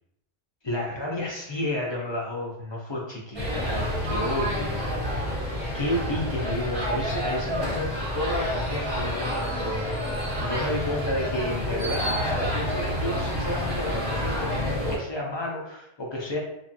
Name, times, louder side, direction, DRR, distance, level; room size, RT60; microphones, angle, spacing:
voice 1, 0.6-4.9 5.7-7.9 8.1-9.9 10.4-16.4, left 1 dB, 45° left, -3 dB, 0.3 m, -31 dB
sound 1, 3.3-15.0, equal, 25° right, 1.0 m, -28 dB
2.7 x 2.3 x 2.5 m, 0.77 s
omnidirectional pair, 1.2 m